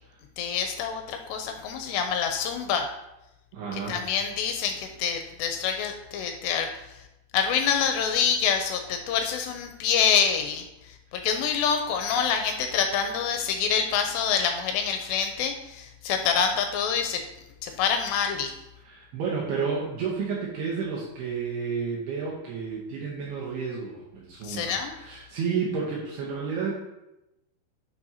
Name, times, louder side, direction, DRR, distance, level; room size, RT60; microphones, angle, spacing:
voice 1, 0.4-2.9 3.7-7.0 7.3-17.2 17.6-18.5 24.4-24.9, left 7 dB, 80° left, 5 dB, 2.6 m, -26 dB
voice 2, 3.5-4.0 18.8-26.7, right 5 dB, 70° right, -3 dB, 2.7 m, -31 dB
10.5 x 6.0 x 2.8 m, 0.92 s
omnidirectional pair, 5.3 m